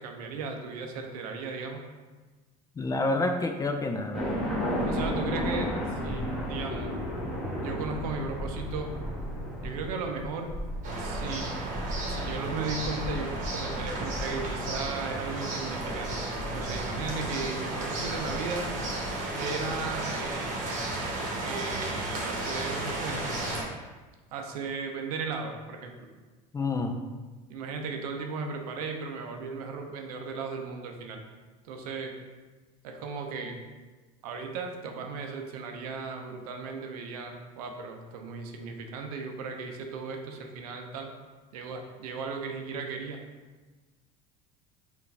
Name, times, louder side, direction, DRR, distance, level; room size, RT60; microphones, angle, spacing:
voice 1, 0.0-1.8 4.9-5.8 6.0-7.0 7.6-8.9 9.6-10.5 11.0-11.5 12.1-18.7 19.4-20.6 21.4-23.3 24.3-26.0 27.5-31.2 31.6-32.1 32.8-33.6 34.2-41.1 41.5-43.2, right 4 dB, 90° right, 4 dB, 0.6 m, -36 dB
voice 2, 2.8-4.3 26.5-26.9, left 2 dB, 20° left, 5 dB, 0.4 m, -28 dB
sound 1, 4.1-19.3, equal, ahead, 0.9 m, -35 dB
sound 2, 10.8-23.6, right 2 dB, 45° right, 1.0 m, -33 dB
4.6 x 2.6 x 3.3 m, 1.3 s
supercardioid pair, 100°, 19 cm